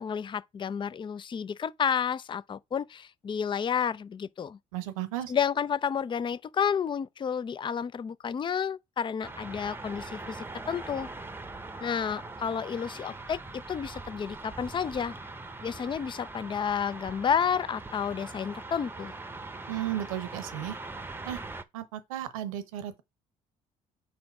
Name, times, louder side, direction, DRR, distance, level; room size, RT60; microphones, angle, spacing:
voice 1, 0.0-4.6 5.3-11.1 11.8-15.1 15.6-19.1, left 7 dB, 30° left, 0.4 m, -31 dB
voice 2, 4.7-5.3 19.7-20.8 21.3-21.4 21.7-23.0, right 12 dB, 90° right, 0.8 m, -34 dB
sound 1, 9.2-21.6, right 3 dB, 15° right, 0.8 m, -42 dB
4.8 x 4.2 x 4.8 m
hypercardioid pair, 60°, 17 cm